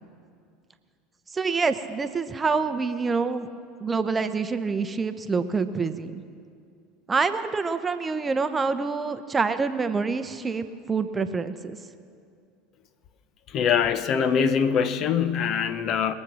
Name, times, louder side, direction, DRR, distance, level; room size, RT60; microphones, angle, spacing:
voice 1, 1.3-3.5 3.8-6.1 7.1-11.8, right 4 dB, 20° right, 10 dB, 0.7 m, -26 dB
voice 2, 13.5-16.1, left 7 dB, 40° left, 12 dB, 0.7 m, -23 dB
21.5 x 7.5 x 6.1 m, 2.3 s
figure-of-eight pair, 75°, 0 cm